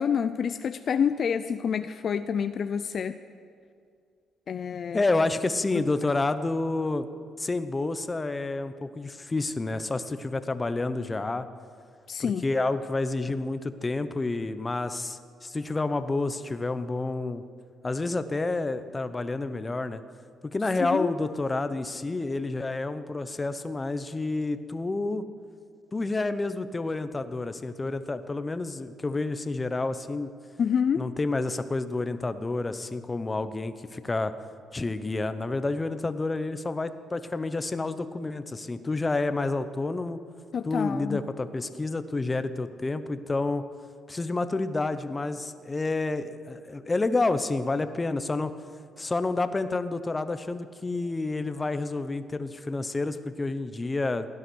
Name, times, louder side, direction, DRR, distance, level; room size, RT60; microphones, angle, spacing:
voice 1, 0.0-3.2 4.5-5.0 12.1-12.4 20.8-21.1 30.6-31.1 40.5-41.2, left 7 dB, 55° left, 11 dB, 0.5 m, -27 dB
voice 2, 4.9-7.1 7.4-11.5 12.2-17.4 17.8-20.0 20.4-25.2 25.9-30.3 31.0-34.3 34.7-40.2 40.6-43.6 44.1-48.5 49.0-54.3, left 3 dB, 25° left, 11 dB, 0.8 m, -29 dB
17.0 x 11.0 x 6.3 m, 2.3 s
cardioid pair, 90°, 0 cm